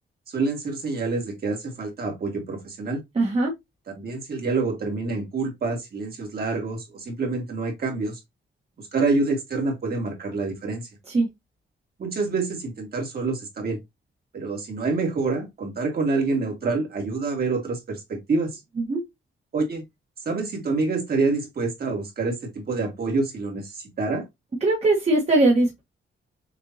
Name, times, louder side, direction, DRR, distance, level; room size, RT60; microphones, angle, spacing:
voice 1, 0.3-3.0 3.9-8.2 8.8-10.9 12.0-13.8 14.3-18.6 19.5-19.8 20.3-24.2, right 3 dB, 50° right, 2.0 m, -27 dB
voice 2, 3.1-3.5 11.1-11.3 18.8-19.0 24.6-25.8, right 2 dB, 30° right, 1.3 m, -20 dB
6.6 x 2.6 x 2.8 m
wide cardioid pair, 150°, 21 cm